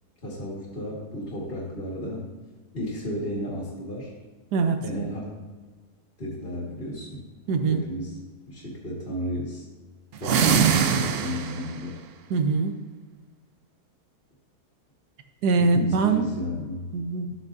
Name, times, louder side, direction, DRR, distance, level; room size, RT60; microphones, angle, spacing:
voice 1, 0.2-2.3 2.7-4.1 4.8-5.4 6.2-7.2 7.7-8.2 8.5-9.7 10.2-12.0 15.6-16.9, left 1 dB, 35° left, -5 dB, 2.0 m, -33 dB
voice 2, 4.5-4.8 7.5-7.8 12.3-12.8 15.4-16.3 16.9-17.4, right 4 dB, 90° right, 6 dB, 1.4 m, -23 dB
sound 1, 10.2-11.8, right 7 dB, 70° right, 0.6 m, -22 dB
13.0 x 8.3 x 2.6 m, 1.4 s
omnidirectional pair, 1.7 m